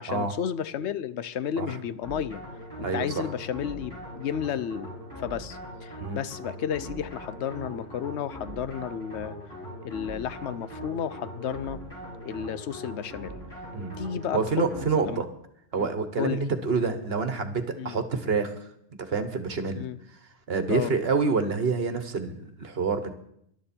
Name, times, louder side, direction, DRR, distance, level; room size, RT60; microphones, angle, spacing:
voice 1, 0.0-2.4 2.9-4.9 5.2-9.3 9.8-11.8 12.2-13.4 14.0-14.7 15.1-15.2 15.8-15.9 16.2-16.4 17.8-18.0 19.7-20.0 20.7-20.9, left 8 dB, 80° left, 15 dB, 1.0 m, -32 dB
sound 1, 2.0-15.2, equal, 20° left, 6.8 m, -41 dB
voice 2, 2.8-3.3 6.0-6.2 13.7-14.0 14.3-15.3 15.7-18.5 19.0-19.9 20.5-23.1, right 4 dB, 60° right, 9 dB, 1.4 m, -27 dB
20.0 x 11.5 x 4.4 m, 0.74 s
omnidirectional pair, 1.1 m